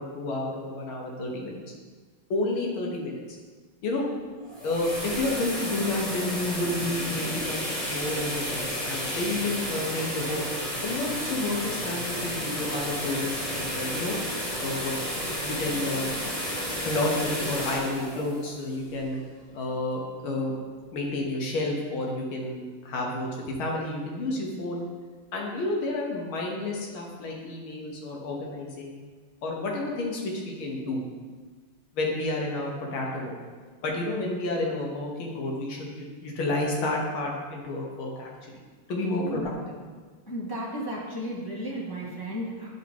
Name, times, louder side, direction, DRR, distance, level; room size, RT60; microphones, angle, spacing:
voice 1, 0.0-1.6 2.3-3.4 3.8-4.1 4.6-10.4 10.8-14.2 14.6-16.1 16.8-19.2 19.5-20.5 20.9-24.8 25.3-29.0 29.4-31.0 31.9-33.4 33.8-38.6 38.9-39.5, left 2 dB, 80° left, -1 dB, 2.0 m, -30 dB
sound 1, 4.4-19.3, equal, 20° left, 1.6 m, -32 dB
voice 2, 40.3-42.7, equal, 35° left, -5 dB, 0.3 m, -34 dB
9.8 x 5.4 x 3.0 m, 1.4 s
omnidirectional pair, 2.3 m